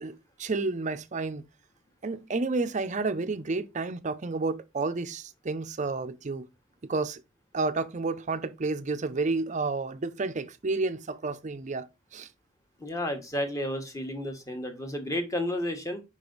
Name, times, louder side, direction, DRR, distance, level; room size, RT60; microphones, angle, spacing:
voice 1, 0.0-1.4 2.0-6.5 6.8-7.2 7.5-12.3, right 3 dB, 35° right, 0.5 m, -31 dB
voice 2, 12.8-16.0, left 1 dB, 15° left, 1.2 m, -32 dB
5.3 x 5.2 x 3.9 m
head